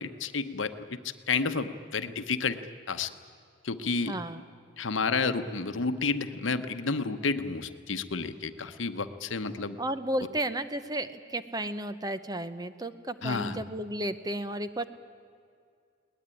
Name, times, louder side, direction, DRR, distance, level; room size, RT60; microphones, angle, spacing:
voice 1, 0.0-2.6 2.9-3.1 3.6-4.2 4.8-9.8 13.2-13.6, left 4 dB, 80° left, 10 dB, 1.0 m, -31 dB
voice 2, 4.1-4.4 9.8-14.8, right 1 dB, 20° right, 11 dB, 0.8 m, -33 dB
21.5 x 19.0 x 9.9 m, 2.3 s
head